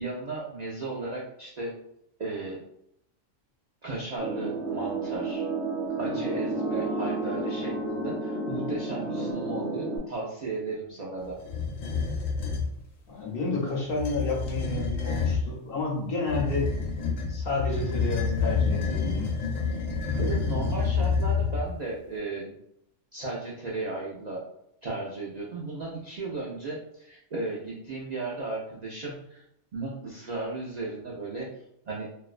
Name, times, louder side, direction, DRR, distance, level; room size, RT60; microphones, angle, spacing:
voice 1, 0.0-1.8 2.2-2.6 3.8-5.5 6.0-11.4 20.2-22.5 23.1-24.4 24.8-29.4 29.7-32.1, right 3 dB, 85° right, -4 dB, 0.3 m, -35 dB
sound 1, 4.2-10.0, right 2 dB, 35° right, 0.7 m, -31 dB
sound 2, 11.4-12.7 13.9-15.5 16.3-21.8, left 5 dB, 85° left, 1.1 m, -28 dB
voice 2, 13.1-16.7 17.3-19.3, left 3 dB, 60° left, -2 dB, 0.7 m, -30 dB
2.5 x 2.1 x 2.4 m, 0.76 s
omnidirectional pair, 1.3 m